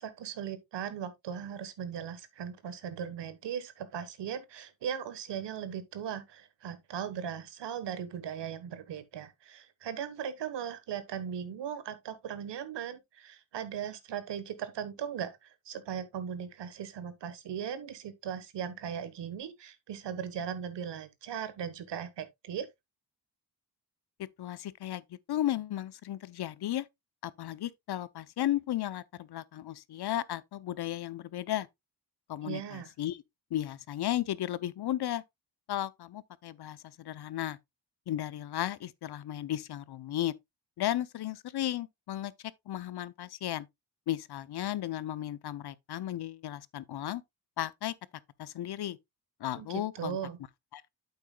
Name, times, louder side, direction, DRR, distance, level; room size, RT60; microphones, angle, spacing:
voice 1, 0.0-22.7 32.4-32.9 49.5-50.4, right 8 dB, 90° right, 1.3 m, -38 dB
voice 2, 24.2-26.9 27.2-31.7 32.3-33.2 33.5-35.2 35.7-37.6 38.1-40.3 40.8-42.3 42.7-43.7 44.1-47.2 47.6-47.9 48.4-49.0 49.4-50.2 50.7-50.9, left 12 dB, 65° left, 0.7 m, -34 dB
8.8 x 8.1 x 2.3 m
cardioid pair, 90°, 41 cm